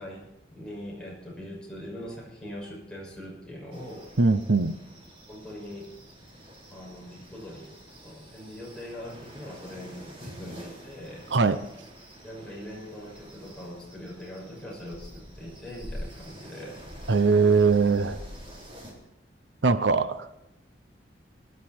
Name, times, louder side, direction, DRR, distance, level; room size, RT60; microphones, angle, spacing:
voice 1, 0.0-4.1 5.3-5.9 6.7-7.7 8.0-11.3 12.2-16.8 17.8-18.4, equal, 5° left, -4 dB, 6.2 m, -42 dB
sound 1, 3.7-18.9, equal, 30° right, 3.7 m, -46 dB
voice 2, 4.2-4.7 11.3-11.6 17.1-18.2 19.6-20.3, right 4 dB, 85° right, 13 dB, 0.8 m, -21 dB
21.0 x 11.5 x 4.4 m, 0.86 s
head